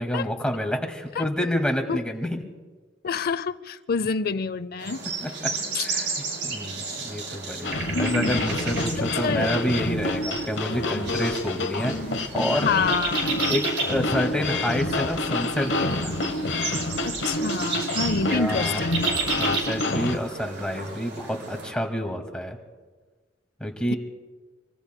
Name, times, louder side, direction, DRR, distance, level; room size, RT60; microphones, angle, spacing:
voice 1, 0.0-2.3 5.2-5.3 5.8-6.1 6.4-11.9 12.3-12.7 13.5-16.1 18.2-18.8 19.4-22.6 23.6-24.0, equal, 5° left, 1.9 m, -28 dB
voice 2, 3.0-5.1 5.7-5.9 7.9-8.5 9.0-9.6 12.6-13.3 17.0-19.2, left 5 dB, 55° left, 0.6 m, -27 dB
sound 1, 4.8-21.7, right 4 dB, 70° right, 6.2 m, -33 dB
sound 2, 7.6-20.2, left 2 dB, 85° left, 1.0 m, -28 dB
25.5 x 25.0 x 2.2 m
head